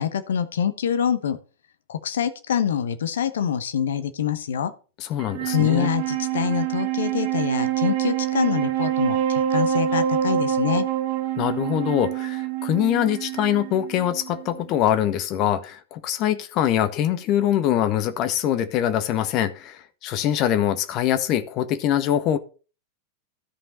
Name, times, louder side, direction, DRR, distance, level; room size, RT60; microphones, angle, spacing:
voice 1, 0.0-1.4 1.9-4.7 5.4-10.8, left 8 dB, 65° left, 1.1 m, -25 dB
voice 2, 5.0-5.9 11.4-22.4, left 11 dB, 40° left, 1.0 m, -23 dB
Wind instrument woodwind instrument, 5.2-14.7, right 10 dB, 55° right, 1.6 m, -26 dB
13.0 x 5.5 x 4.2 m
figure-of-eight pair, 90°, 0 cm